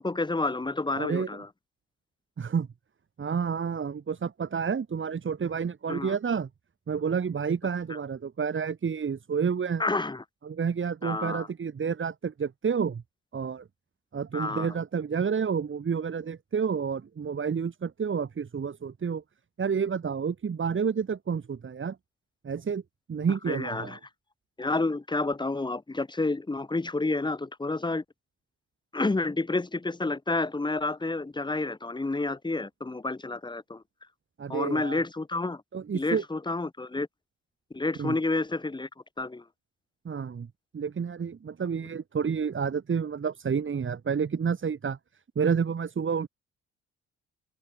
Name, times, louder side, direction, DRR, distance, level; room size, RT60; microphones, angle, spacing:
voice 1, 0.0-1.5 5.9-6.2 9.8-10.2 11.0-11.5 14.3-14.7 23.5-24.0 24.6-28.0 28.9-33.8 34.5-35.6 35.9-37.1 37.7-38.9 39.2-39.4, left 2 dB, 15° left, 1.6 m, -29 dB
voice 2, 1.0-1.3 2.4-2.7 3.2-6.5 6.9-9.8 10.4-13.0 13.3-13.7 14.1-19.2 19.6-22.0 22.4-22.8 23.1-24.0 34.4-35.0 35.7-36.2 38.0-38.2 40.1-45.0 45.4-46.3, right 6 dB, 40° right, 3.7 m, -29 dB
open air
cardioid pair, 90°, 30 cm